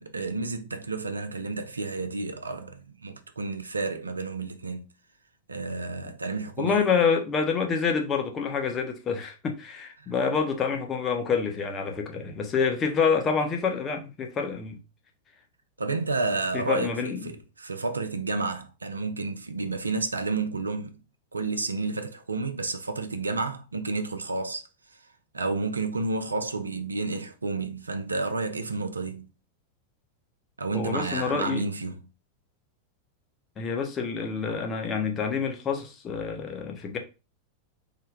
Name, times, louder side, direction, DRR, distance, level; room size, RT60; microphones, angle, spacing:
voice 1, 0.0-4.9 5.5-6.8 15.8-20.9 21.3-24.6 25.3-29.3 30.6-32.0, right 3 dB, 80° right, 0.4 m, -31 dB
voice 2, 6.6-14.8 16.5-17.3 30.7-31.6 33.6-37.0, left 5 dB, 25° left, 0.8 m, -27 dB
3.7 x 2.1 x 3.5 m
figure-of-eight pair, 90°, 0 cm